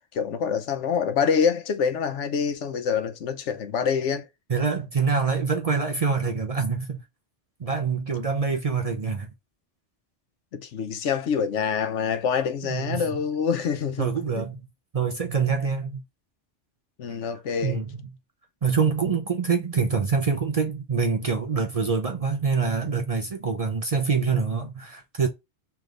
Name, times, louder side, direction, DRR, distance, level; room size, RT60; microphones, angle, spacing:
voice 1, 0.1-4.3 10.5-14.5 17.0-17.8, left 6 dB, 80° left, 1.1 m, -26 dB
voice 2, 4.5-7.0 7.6-9.3 12.6-13.2 14.0-14.6 14.9-16.0 17.6-18.1 18.6-25.3, right 5 dB, 40° right, 0.6 m, -25 dB
3.3 x 3.3 x 3.6 m
omnidirectional pair, 1.2 m